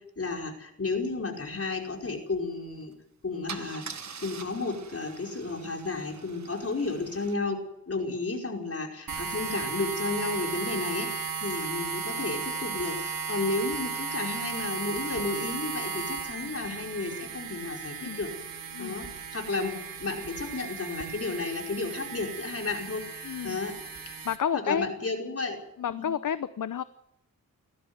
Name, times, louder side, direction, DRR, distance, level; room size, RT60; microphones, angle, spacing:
voice 1, 0.2-2.9 3.2-3.9 4.2-18.3 18.8-23.8 24.5-25.6 25.9-26.1, left 3 dB, 40° left, 2 dB, 5.2 m, -32 dB
Car / Engine starting / Idling, 2.8-2.9 3.5-7.3, right 6 dB, 50° right, 1.5 m, -44 dB
sound 1, 9.1-24.4, right 5 dB, 70° right, 2.3 m, -35 dB
voice 2, 23.2-23.6 24.1-24.9 25.8-26.8, left 8 dB, 60° left, 14 dB, 0.8 m, -31 dB
18.5 x 14.5 x 9.6 m, 0.81 s
cardioid pair, 75°, 35 cm